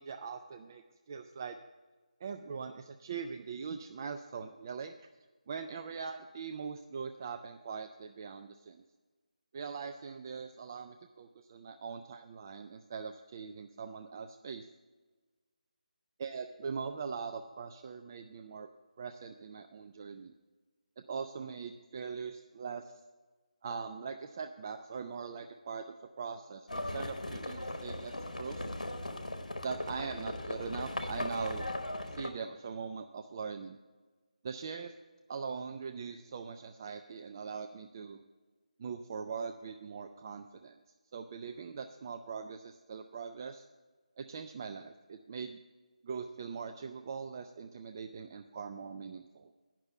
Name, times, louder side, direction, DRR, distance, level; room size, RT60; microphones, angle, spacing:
voice 1, 0.0-1.6 2.2-4.9 5.5-8.8 9.5-14.7 16.2-18.7 19.0-20.3 21.0-23.0 23.6-28.7 29.6-31.7 32.1-33.8 34.4-34.9 35.3-38.2 38.8-40.8 41.1-43.7 44.2-45.6 46.0-49.5, right 5 dB, 25° right, 6 dB, 0.3 m, -41 dB
Livestock farm animals working animals, 26.7-32.3, left 1 dB, 75° left, 1.1 m, -38 dB
9.5 x 6.0 x 7.7 m, 1.3 s
figure-of-eight pair, 155°, 4 cm